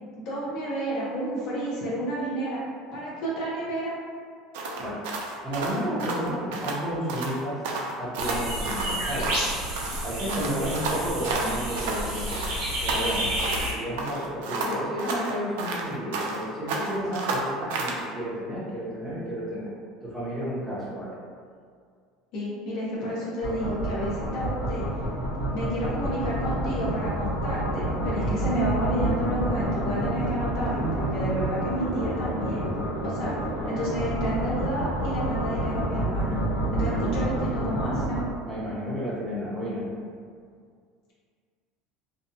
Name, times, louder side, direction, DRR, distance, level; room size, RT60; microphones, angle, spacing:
voice 1, 0.1-2.6 2.9-3.9 22.3-24.8 25.5-32.6 33.0-33.3 33.6-36.4 36.7-38.2, right 1 dB, 50° left, -7 dB, 0.7 m, -30 dB
sound 1, 4.5-6.8 7.1-7.4 7.6-9.5 9.8-12.0 12.3-13.7 14.0-16.4 16.7-18.0, right 3 dB, 85° right, 0.4 m, -31 dB
voice 2, 5.4-7.6 8.0-9.3 10.0-12.4 12.8-13.3 13.6-19.6 20.0-21.1 36.8-37.0 38.5-39.8, equal, ahead, -10 dB, 0.6 m, -32 dB
sound 2, 8.2-13.7, equal, 65° right, 0.9 m, -30 dB
sound 3, 23.4-38.2, right 1 dB, 75° left, 1.2 m, -28 dB
2.6 x 2.2 x 2.7 m, 2.1 s
cardioid pair, 180°, 0 cm